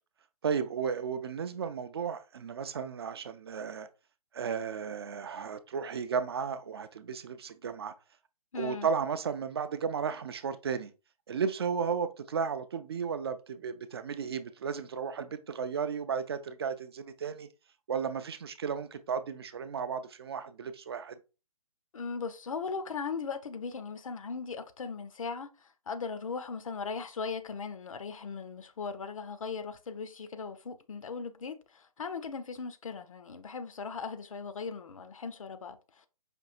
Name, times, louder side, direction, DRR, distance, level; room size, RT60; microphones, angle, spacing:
voice 1, 0.4-3.9 4.3-7.9 8.5-10.9 11.3-17.5 17.9-21.2, right 6 dB, 40° right, 0.4 m, -34 dB
voice 2, 8.5-8.9 21.9-36.1, left 5 dB, 60° left, 0.5 m, -38 dB
5.2 x 2.7 x 2.4 m
figure-of-eight pair, 135°, 20 cm